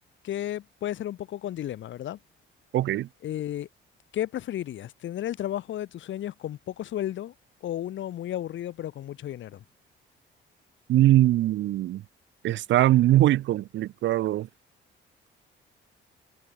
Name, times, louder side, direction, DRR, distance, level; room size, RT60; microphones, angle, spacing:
voice 1, 0.2-2.2 3.2-3.7 4.1-7.3 7.6-9.6, left 12 dB, 70° left, 1.9 m, -33 dB
voice 2, 2.7-3.1 10.9-12.0 12.4-14.5, right 14 dB, 70° right, 0.5 m, -21 dB
cardioid pair, 90°, 20 cm